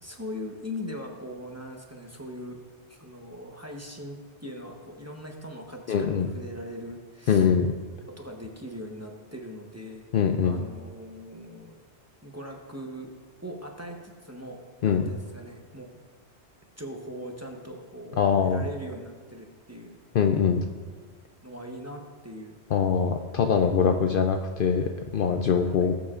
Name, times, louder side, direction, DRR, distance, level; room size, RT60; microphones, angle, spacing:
voice 1, 0.0-2.6 2.9-7.5 8.1-10.1 10.4-11.8 12.2-13.1 13.4-15.9 16.8-20.0 21.4-22.6 25.8-25.9, equal, 15° right, 1 dB, 0.9 m, -40 dB
voice 2, 5.9-6.3 7.3-7.7 10.1-10.6 14.8-15.0 18.2-18.6 20.1-20.6 22.7-25.9, left 6 dB, 60° left, 5 dB, 0.6 m, -23 dB
19.5 x 7.1 x 2.5 m, 1.5 s
omnidirectional pair, 1.2 m